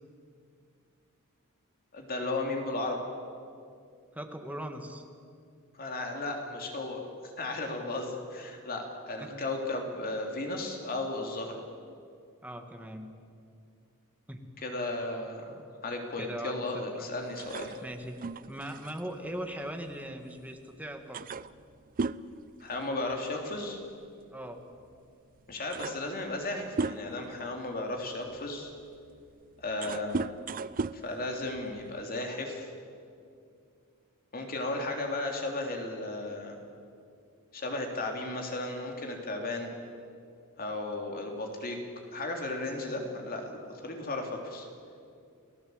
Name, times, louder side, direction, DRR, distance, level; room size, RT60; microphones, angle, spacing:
voice 1, 1.9-3.0 5.7-7.0 7.4-11.6 14.6-17.8 22.6-23.8 25.5-28.7 29.6-30.3 30.9-32.7 34.3-36.6 37.5-39.7 40.6-41.8 42.1-44.7, left 2 dB, 45° left, 2 dB, 3.4 m, -35 dB
voice 2, 4.1-5.0 9.2-9.3 12.4-13.1 14.3-14.5 15.6-15.7 16.2-17.2 17.8-18.2 18.5-21.2 24.3-24.6, right 1 dB, 5° right, 4 dB, 1.9 m, -40 dB
sound 1, 17.4-20.4 20.7-20.8 21.1-23.3 23.6-23.9 24.8-24.9 25.4-27.3 27.9-32.0, right 4 dB, 40° right, 0.5 m, -37 dB
29.5 x 16.5 x 8.1 m, 2.4 s
head